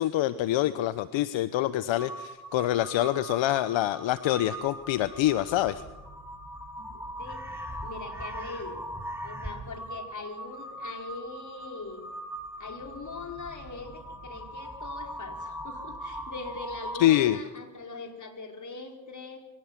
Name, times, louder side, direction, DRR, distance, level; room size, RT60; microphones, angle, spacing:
voice 1, 0.0-5.8 17.0-17.4, left 14 dB, 70° left, 14 dB, 0.9 m, -25 dB
Crow, 1.9-17.4, equal, 5° right, 5.8 m, -40 dB
voice 2, 6.8-8.9 9.2-12.0 12.6-19.4, left 3 dB, 40° left, 4 dB, 5.0 m, -42 dB
23.5 x 18.0 x 7.5 m, 1.1 s
supercardioid pair, 65°, 47 cm